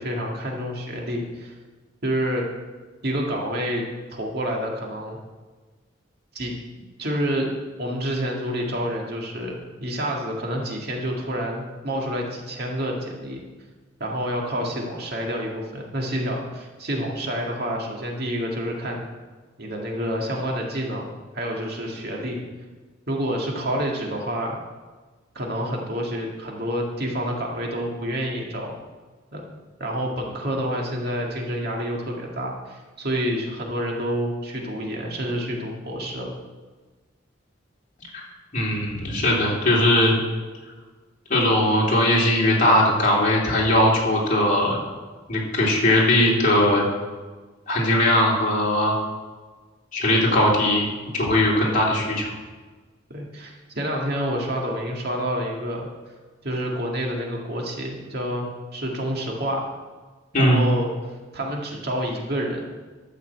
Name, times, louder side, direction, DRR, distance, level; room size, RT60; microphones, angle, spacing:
voice 1, 0.0-1.5 2.0-2.5 3.0-3.8 4.1-5.2 6.3-6.5 7.0-13.4 14.0-19.1 19.6-22.4 23.1-24.6 25.3-28.7 29.3-29.4 29.8-36.3 53.1-55.9 56.4-59.7 60.4-60.9 61.3-62.6, equal, 55° right, -1 dB, 2.0 m, -28 dB
voice 2, 38.5-40.2 41.3-44.8 45.3-46.8 47.7-49.0 49.9-50.8 51.1-52.3 60.3-60.7, left 1 dB, 45° left, -4 dB, 3.1 m, -19 dB
12.5 x 5.7 x 7.6 m, 1.3 s
head